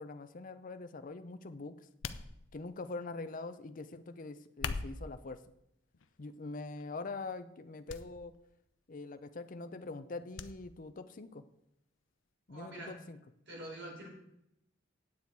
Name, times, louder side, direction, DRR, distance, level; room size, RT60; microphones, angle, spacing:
voice 1, 0.0-1.8 2.5-5.4 6.2-8.3 8.9-11.4 12.5-13.2, left 3 dB, 45° left, 10 dB, 0.6 m, -43 dB
sound 1, 2.0-2.8 4.4-5.2 5.9-6.3 6.8-6.9 7.9-8.1 8.3-8.4 10.4-10.5 10.9-11.0, left 5 dB, 85° left, 0.6 m, -40 dB
voice 2, 12.5-12.9 13.5-14.1, right 1 dB, 65° right, -3 dB, 4.6 m, -45 dB
9.5 x 8.4 x 4.6 m, 0.80 s
head